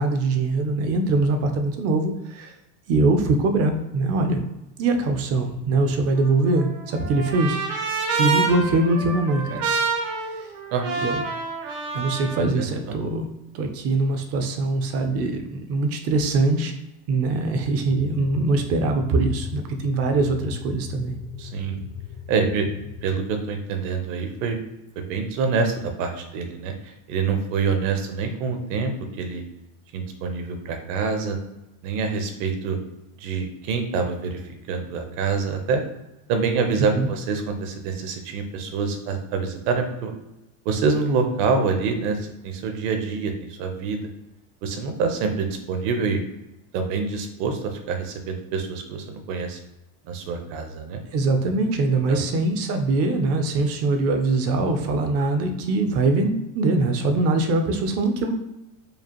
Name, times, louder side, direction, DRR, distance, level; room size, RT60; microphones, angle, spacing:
voice 1, 0.0-2.6 2.9-4.4 4.8-7.6 8.2-9.7 10.2-10.5 11.0-11.2 11.9-13.3 13.5-16.7 17.1-21.2 36.9-37.1 51.1-58.3, right 3 dB, 35° right, 6 dB, 0.4 m, -22 dB
Trumpet, 6.2-12.5, right 4 dB, 80° right, 1.2 m, -28 dB
sound 1, 17.8-23.2, left 7 dB, 65° left, 0.6 m, -37 dB
voice 2, 21.4-21.8 22.3-22.7 23.0-24.6 25.0-28.9 29.2-29.4 29.9-31.4 31.8-32.8 33.2-34.4 34.7-35.8 36.3-40.1 40.6-44.0 44.6-46.2 46.7-49.6 50.0-51.0 52.1-52.2, right 5 dB, 60° right, 5 dB, 0.8 m, -26 dB
4.9 x 2.4 x 2.9 m, 0.94 s
cardioid pair, 155°, 43 cm